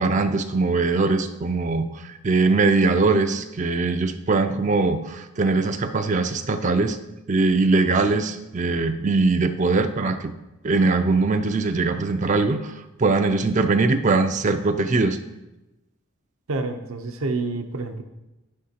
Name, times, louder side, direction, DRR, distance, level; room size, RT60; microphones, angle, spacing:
voice 1, 0.0-7.0 7.3-10.3 10.6-15.2, right 3 dB, 35° right, 7 dB, 0.4 m, -21 dB
voice 2, 16.5-18.0, right 3 dB, 75° right, 5 dB, 0.7 m, -28 dB
10.5 x 9.9 x 2.8 m, 1.0 s
head